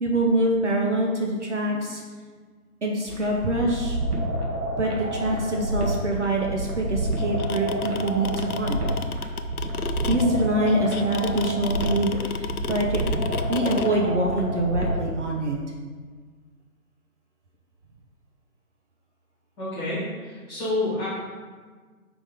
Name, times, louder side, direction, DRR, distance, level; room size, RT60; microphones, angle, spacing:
voice 1, 0.0-2.0 2.8-4.0 4.8-8.8 10.1-13.0 13.4-15.6, right 1 dB, 50° right, 0 dB, 0.8 m, -25 dB
sound 1, 3.1-15.1, right 1 dB, 85° right, 1.6 m, -29 dB
piezo friction, 7.2-13.9, left 6 dB, 75° left, 0.6 m, -32 dB
voice 2, 19.6-21.1, left 2 dB, 5° left, -12 dB, 1.6 m, -28 dB
4.9 x 3.9 x 5.1 m, 1.5 s
figure-of-eight pair, 145°, 45 cm